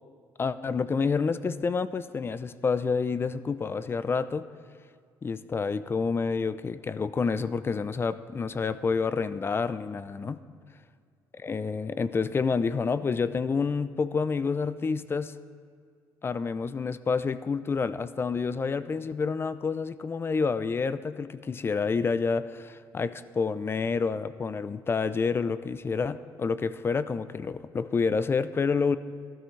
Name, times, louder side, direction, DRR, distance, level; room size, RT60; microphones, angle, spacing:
voice 1, 0.4-4.5 5.2-10.4 11.4-15.4 16.2-29.0, left 5 dB, 30° left, 14 dB, 0.5 m, -28 dB
14.0 x 12.5 x 3.2 m, 2.1 s
cardioid pair, 85°, 8 cm